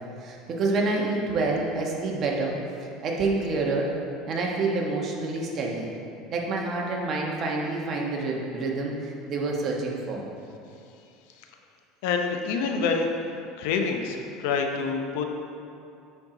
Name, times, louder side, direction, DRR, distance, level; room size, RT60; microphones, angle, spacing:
voice 1, 0.2-2.5 3.0-3.9 4.3-5.9 6.3-10.3, right 3 dB, 40° right, -1 dB, 1.2 m, -27 dB
voice 2, 12.0-13.1 13.6-15.2, left 5 dB, 75° left, 3 dB, 0.7 m, -26 dB
9.4 x 4.5 x 3.9 m, 2.6 s
supercardioid pair, 130°, 0 cm